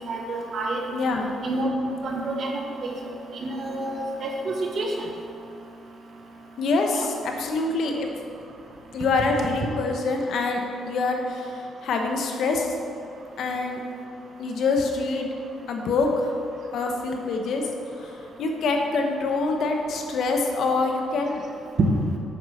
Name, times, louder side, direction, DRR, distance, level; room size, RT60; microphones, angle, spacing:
voice 1, 0.1-0.9 1.4-1.7 2.0-3.0 3.3-4.9 6.9-7.1 21.8-21.9, right 3 dB, 55° right, 1 dB, 1.7 m, -28 dB
voice 2, 0.9-1.3 6.6-8.1 8.9-12.7 13.4-13.8 14.4-15.3 15.7-16.3 16.7-17.7 18.0-21.7, left 3 dB, 70° left, 3 dB, 1.4 m, -25 dB
8.7 x 7.2 x 6.7 m, 2.5 s
cardioid pair, 90°, 0 cm